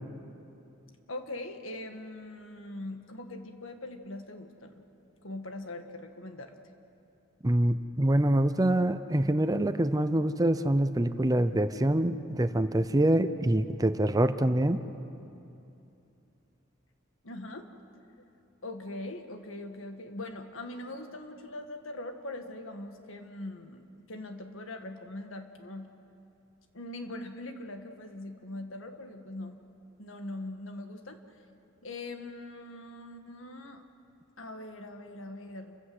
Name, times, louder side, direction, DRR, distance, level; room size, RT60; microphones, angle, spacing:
voice 1, 1.1-4.8 5.2-6.6 17.2-17.7 18.6-25.9 26.7-29.6 30.0-31.2 31.8-33.8 34.4-35.8, left 2 dB, 85° left, 6 dB, 1.7 m, -41 dB
voice 2, 7.4-14.8, right 1 dB, 20° right, 11 dB, 0.6 m, -25 dB
29.0 x 14.5 x 7.9 m, 2.7 s
head